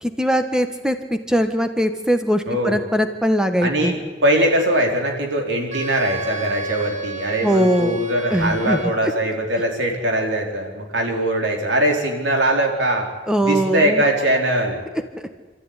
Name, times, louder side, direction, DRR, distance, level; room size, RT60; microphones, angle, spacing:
voice 1, 0.0-3.9 7.4-8.0 8.3-8.8 13.3-14.0, equal, 5° right, 7 dB, 1.5 m, -20 dB
voice 2, 2.5-2.8 3.6-13.1 13.4-14.8, right 1 dB, 70° right, 1 dB, 4.5 m, -21 dB
Wind instrument woodwind instrument, 5.7-9.3, right 2 dB, 40° right, 2.3 m, -31 dB
28.0 x 14.0 x 9.9 m, 1.4 s
head